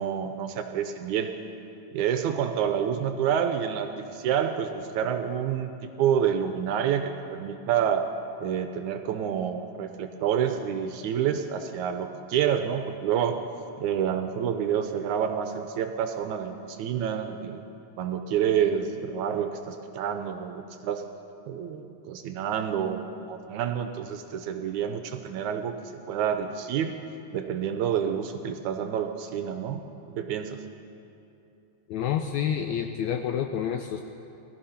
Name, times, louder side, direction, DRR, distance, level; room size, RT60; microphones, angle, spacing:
voice 1, 0.0-1.3 1.9-8.1 8.4-13.4 13.8-17.6 18.0-21.0 21.5-27.0 27.3-29.8 30.1-30.6, right 8 dB, 75° right, 7 dB, 1.9 m, -28 dB
voice 2, 31.9-34.0, left 9 dB, 80° left, 6 dB, 1.6 m, -28 dB
19.0 x 13.5 x 5.7 m, 2.8 s
omnidirectional pair, 3.8 m